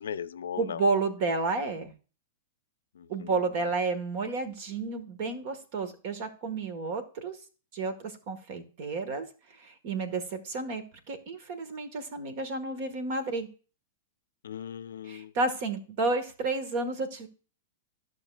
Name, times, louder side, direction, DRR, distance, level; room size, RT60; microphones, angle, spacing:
voice 1, 0.0-0.8 3.0-3.3 14.4-15.3, left 8 dB, 75° left, 0.5 m, -38 dB
voice 2, 0.6-1.9 3.1-7.4 7.7-9.2 9.6-13.5 15.0-17.3, right 3 dB, 55° right, 1.8 m, -31 dB
14.5 x 6.4 x 2.5 m
hypercardioid pair, 105°, 0 cm